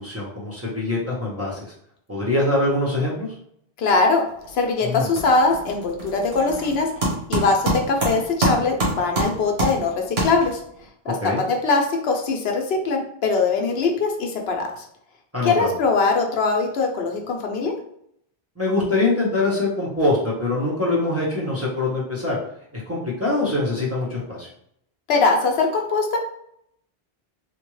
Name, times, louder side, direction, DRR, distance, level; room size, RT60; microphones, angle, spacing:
voice 1, 0.0-1.7 2.1-3.3 4.8-5.1 11.1-11.4 15.3-15.7 18.6-22.4 22.7-24.5, left 2 dB, 15° right, -6 dB, 0.7 m, -23 dB
voice 2, 3.8-4.2 4.5-6.9 7.3-10.6 11.0-14.8 15.4-17.7 25.1-26.2, left 3 dB, 75° left, 2 dB, 0.9 m, -21 dB
sound 1, 4.3-4.7 4.9-10.8, right 1 dB, 90° right, 1.4 m, -26 dB
3.5 x 2.2 x 3.1 m, 0.71 s
omnidirectional pair, 1.1 m